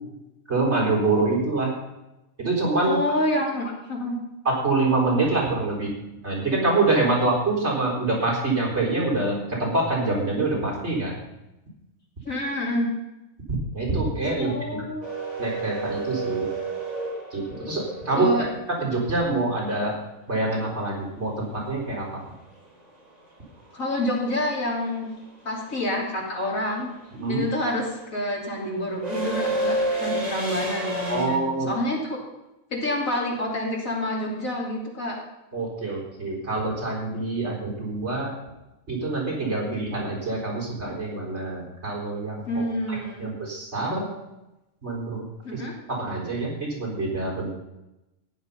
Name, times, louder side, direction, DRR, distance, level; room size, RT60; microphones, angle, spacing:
voice 1, 0.5-1.7 2.4-3.0 4.4-5.9 6.2-11.2 13.7-14.8 15.4-16.5 17.3-18.3 18.8-19.9 20.3-22.2 27.1-27.4 31.1-31.7 35.5-38.3 38.9-44.1 44.8-45.2 45.5-45.6 45.9-47.5, right 2 dB, 50° right, -3 dB, 4.6 m, -25 dB
voice 2, 2.9-4.2 12.3-12.9 14.4-15.1 18.1-18.5 23.7-25.1 25.5-26.9 27.3-32.2 32.7-35.2 39.7-39.8 42.5-43.3 45.4-45.7, left 1 dB, 75° left, -2 dB, 3.5 m, -28 dB
sound 1, 15.0-19.1 21.5-21.6 22.9-23.2 23.5-31.2, right 1 dB, 30° right, 4.0 m, -30 dB
14.5 x 10.5 x 5.5 m, 0.95 s
omnidirectional pair, 1.4 m